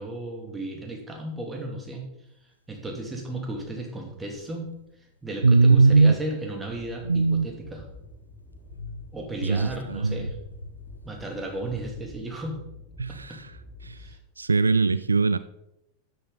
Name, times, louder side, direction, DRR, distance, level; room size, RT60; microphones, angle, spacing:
voice 1, 0.0-2.0 2.7-4.7 5.2-7.8 9.1-10.3 11.0-12.6 13.1-13.4 14.0-14.2, right 1 dB, 10° right, 2 dB, 2.7 m, -34 dB
sound 1, 2.7-2.8 3.5-5.3 5.8-8.1 8.7-11.5, left 1 dB, 85° left, 1.0 m, -45 dB
voice 2, 5.4-6.1 7.1-7.5 9.4-10.3 13.0-13.5 13.8-14.0 14.4-15.4, right 3 dB, 80° right, 15 dB, 0.3 m, -20 dB
sound 2, 6.7-14.1, left 2 dB, 15° left, 4.7 m, -47 dB
12.5 x 8.5 x 4.0 m, 0.84 s
figure-of-eight pair, 90°, 0 cm